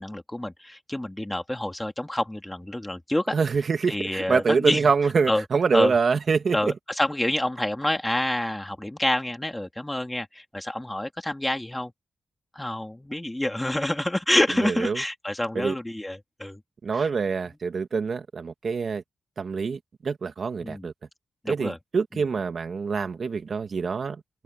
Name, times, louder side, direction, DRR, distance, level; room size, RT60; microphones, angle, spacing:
voice 1, 0.0-3.4 3.9-4.9 5.3-5.4 5.7-5.9 6.5-11.9 12.5-16.6 16.9-17.1 20.6-20.9 21.4-21.8 22.1-22.2, left 1 dB, 15° left, 3.4 m, -27 dB
voice 2, 3.3-6.7 14.6-15.0 15.5-15.8 16.8-19.0 19.4-20.9 21.5-24.2, right 5 dB, 60° right, 2.4 m, -25 dB
cardioid pair, 55°, 0 cm